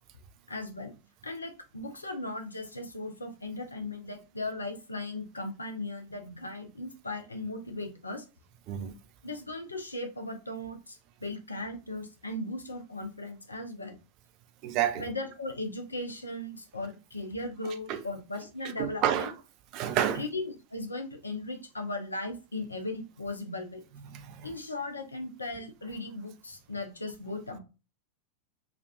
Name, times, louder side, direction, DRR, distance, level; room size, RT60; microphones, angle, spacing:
voice 1, 0.5-0.9 1.2-8.2 9.2-14.0 14.9-19.4 20.1-23.8 24.4-27.6, left 2 dB, 80° left, 0.6 m, -37 dB
voice 2, 14.6-15.0 17.9-18.0 18.8-19.3 19.7-20.2 24.1-24.5, right 10 dB, 40° right, 0.4 m, -29 dB
3.5 x 2.3 x 2.3 m
figure-of-eight pair, 90°, 0 cm